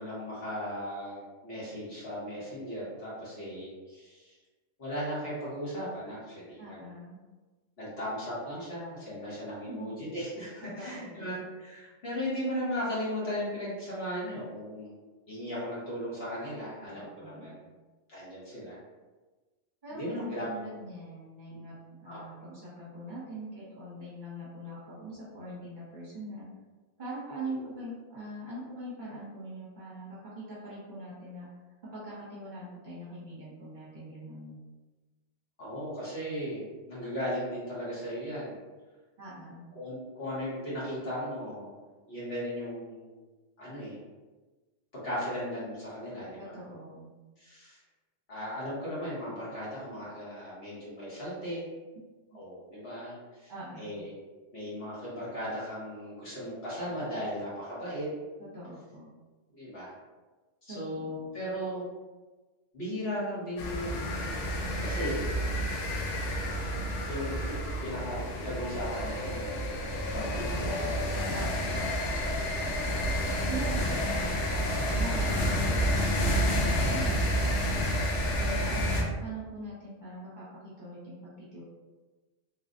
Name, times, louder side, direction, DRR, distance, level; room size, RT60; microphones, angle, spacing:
voice 1, 0.0-4.3 4.8-6.9 7.8-14.9 15.3-17.5 18.1-18.8 19.9-20.6 21.5-21.6 22.1-22.2 27.5-27.6 35.6-38.6 39.7-41.8 42.1-43.2 43.6-44.0 44.9-46.6 47.4-47.8 48.3-51.6 52.3-54.1 54.5-58.1 59.5-59.9 60.6-61.8 62.7-64.3 64.8-65.3 67.1-69.8 70.1-71.3, equal, 55° left, -9 dB, 1.4 m, -37 dB
voice 2, 6.6-7.2 9.7-10.0 10.6-11.3 16.9-17.7 19.8-26.5 27.0-31.5 31.9-34.6 39.2-39.7 46.4-47.1 53.5-53.9 58.5-59.1 60.7-61.3 70.1-70.7 71.3-71.9 73.5-77.8 78.3-81.6, right 1 dB, 45° right, -9 dB, 1.0 m, -42 dB
sound 1, 63.6-79.0, equal, 75° left, 0.9 m, -29 dB
3.2 x 2.3 x 2.5 m, 1.3 s
omnidirectional pair, 1.2 m